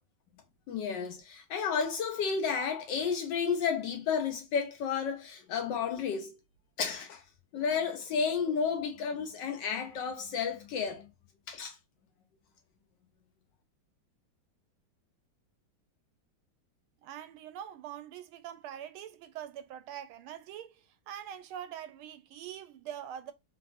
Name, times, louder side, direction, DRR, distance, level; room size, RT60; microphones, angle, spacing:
voice 1, 0.7-6.4 6.8-7.2 7.5-11.1 11.5-11.8, left 6 dB, 70° left, 1.1 m, -32 dB
voice 2, 17.0-23.3, right 10 dB, 85° right, 1.4 m, -44 dB
3.3 x 2.9 x 2.4 m
omnidirectional pair, 2.3 m